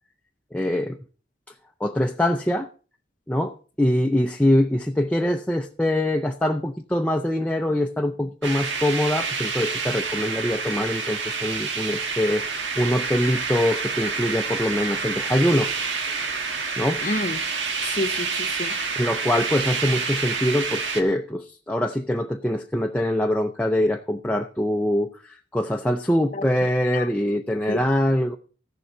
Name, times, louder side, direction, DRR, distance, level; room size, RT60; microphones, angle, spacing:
voice 1, 0.5-1.0 1.8-2.7 3.3-15.7 16.2-16.3 16.8-17.0 19.0-28.4, left 1 dB, 5° left, 4 dB, 0.5 m, -23 dB
sound 1, 8.4-21.0, right 5 dB, 80° right, 1.5 m, -28 dB
voice 2, 17.0-17.4 17.8-18.7 26.3-26.4 26.9-27.1 27.7-27.8, left 2 dB, 45° left, 11 dB, 0.8 m, -29 dB
15.0 x 7.1 x 5.1 m, 0.40 s
head